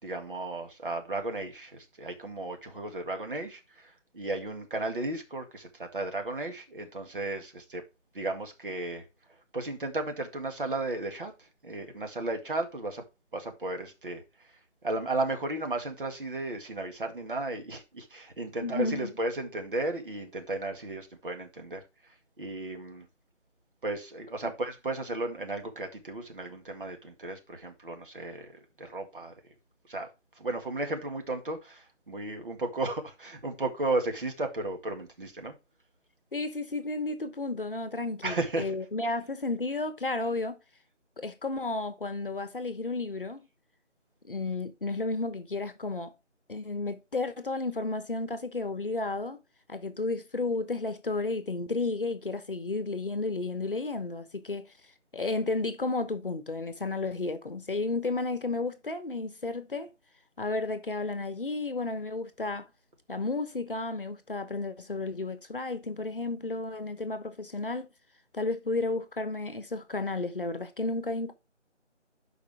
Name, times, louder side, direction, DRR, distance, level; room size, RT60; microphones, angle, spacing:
voice 1, 0.0-7.8 8.1-9.1 9.5-13.0 13.3-23.1 23.8-29.5 29.9-30.1 30.3-35.5 38.2-38.8, right 2 dB, 45° right, 2.1 m, -34 dB
voice 2, 18.6-19.1 36.3-40.6 41.2-43.4 44.2-46.1 46.5-49.4 49.7-54.7 55.1-59.9 60.4-62.7 63.1-67.9 68.3-71.3, left 3 dB, 50° left, 1.1 m, -32 dB
11.5 x 5.1 x 3.3 m
figure-of-eight pair, 160°, 36 cm